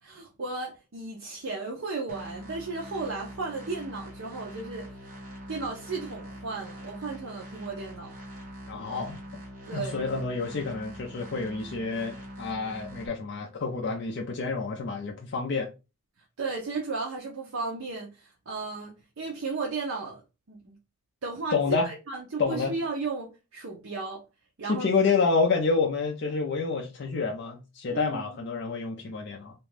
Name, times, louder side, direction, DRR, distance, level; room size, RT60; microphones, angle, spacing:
voice 1, 0.0-5.0 5.5-8.1 9.7-10.0 16.4-20.2 20.5-20.8 21.2-24.2 24.6-24.9 27.9-28.4, right 3 dB, 65° right, 0.5 m, -35 dB
sound 1, 2.1-13.1, equal, 40° right, 0.8 m, -43 dB
voice 2, 8.7-9.2 9.7-15.7 21.5-21.9 22.4-22.7 24.7-29.5, left 4 dB, 50° left, 0.4 m, -28 dB
2.4 x 2.2 x 3.1 m
head